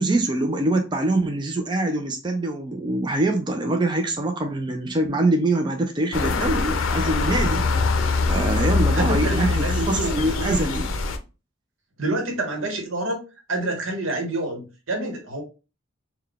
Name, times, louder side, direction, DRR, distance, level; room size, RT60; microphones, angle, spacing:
voice 1, 0.0-7.6 8.3-10.9, right 2 dB, 25° right, 0.4 m, -24 dB
sound 1, 6.1-11.2, left 3 dB, 80° left, 0.5 m, -23 dB
voice 2, 8.8-10.8 12.0-13.2 13.5-15.4, right 2 dB, 80° right, 1.0 m, -28 dB
3.8 x 2.2 x 3.4 m
head